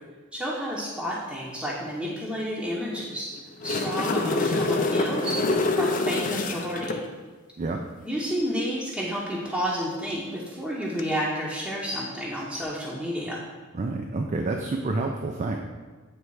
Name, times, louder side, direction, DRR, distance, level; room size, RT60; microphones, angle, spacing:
voice 1, 0.3-3.3 3.6-5.4 5.8-7.0 8.0-13.4, equal, 5° right, -7 dB, 0.8 m, -30 dB
sound 1, 3.4-7.0 10.8-11.0, left 3 dB, 40° left, 0.5 m, -26 dB
voice 2, 13.7-15.6, right 3 dB, 35° right, 2 dB, 0.4 m, -28 dB
8.3 x 3.3 x 4.7 m, 1.4 s
head